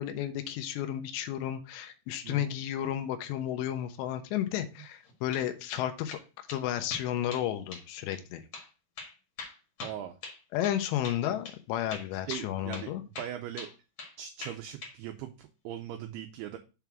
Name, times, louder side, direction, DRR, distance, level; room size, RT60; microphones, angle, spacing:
voice 1, 0.0-6.2 6.5-8.4 10.5-13.0, left 11 dB, 80° left, 7 dB, 2.9 m, -32 dB
sound 1, 5.0-5.4 5.7-6.2 6.5-6.6 6.9-7.5 7.7-7.9 8.1-8.2 8.5-8.7 9.0-10.8 11.0-11.2 11.4-11.6 11.9-12.5 12.7-12.9 13.1-14.1 14.4-15.0, left 4 dB, 50° left, 2.0 m, -42 dB
voice 2, 9.8-10.2 12.3-12.9 13.2-13.7 14.2-16.6, right 11 dB, 85° right, 7 dB, 2.2 m, -40 dB
6.9 x 3.5 x 5.9 m, 0.31 s
omnidirectional pair, 5.2 m